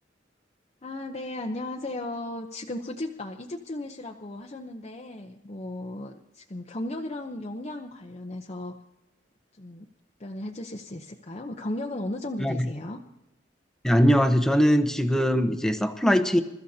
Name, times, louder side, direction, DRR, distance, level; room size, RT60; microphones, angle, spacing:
voice 1, 0.8-8.7 9.5-9.9 10.2-13.0, left 1 dB, 35° left, 1 dB, 0.8 m, -35 dB
voice 2, 13.8-16.4, equal, 5° left, 7 dB, 1.0 m, -21 dB
27.5 x 13.5 x 2.8 m, 0.94 s
head